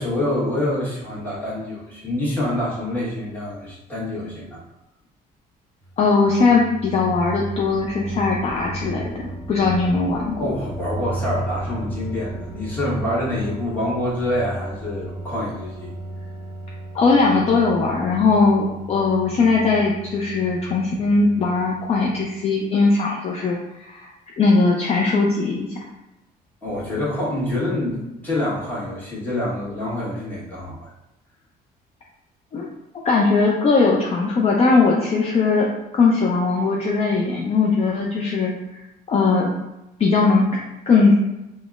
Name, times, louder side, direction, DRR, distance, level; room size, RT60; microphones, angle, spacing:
voice 1, 0.0-4.6 10.4-15.9 26.6-30.9, left 1 dB, 10° left, -7 dB, 1.2 m, -26 dB
sound 1, 5.8-22.6, right 1 dB, 20° right, 0.8 m, -34 dB
voice 2, 6.0-10.4 16.9-24.1 24.4-25.7 32.5-32.7 33.0-35.7 35.9-38.8 39.1-39.5 40.0-40.6 40.9-41.1, left 4 dB, 40° left, -2 dB, 0.4 m, -19 dB
3.9 x 2.0 x 2.4 m, 0.94 s
cardioid pair, 110°, 17 cm